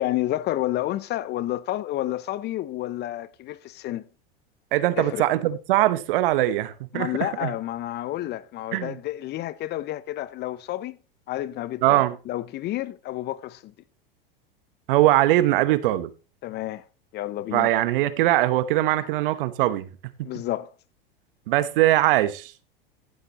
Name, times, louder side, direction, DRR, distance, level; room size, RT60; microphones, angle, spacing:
voice 1, 0.0-4.0 5.0-5.2 6.9-11.0 11.3-13.7 16.4-16.8 17.1-17.7 20.2-20.7, left 14 dB, 35° left, 0.6 m, -30 dB
voice 2, 4.7-7.5 8.7-8.9 11.8-12.2 14.9-16.1 17.5-19.9 21.5-22.6, right 15 dB, 65° right, 1.0 m, -21 dB
15.0 x 7.7 x 2.9 m
hypercardioid pair, 95°, 29 cm